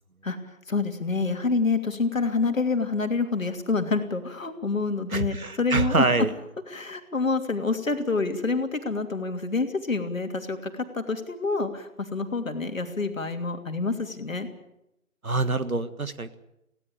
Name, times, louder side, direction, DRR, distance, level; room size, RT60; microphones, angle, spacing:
voice 1, 0.7-6.1 6.7-14.5, left 3 dB, 65° left, 6 dB, 3.0 m, -27 dB
voice 2, 5.1-6.3 15.2-16.4, right 3 dB, 75° right, 12 dB, 1.8 m, -25 dB
19.5 x 17.0 x 8.6 m, 0.84 s
figure-of-eight pair, 155°, 43 cm